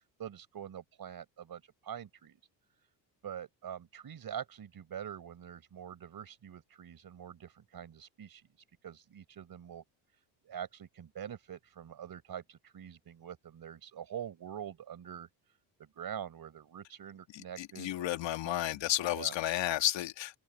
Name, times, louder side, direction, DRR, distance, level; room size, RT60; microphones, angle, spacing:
voice 1, 0.2-2.4 3.2-8.4 8.8-9.8 10.4-15.3 15.8-18.8 19.1-19.4, right 9 dB, 50° right, 4.4 m, -45 dB
voice 2, 17.3-20.4, left 14 dB, 70° left, 2.0 m, -32 dB
supercardioid pair, 85°, 46 cm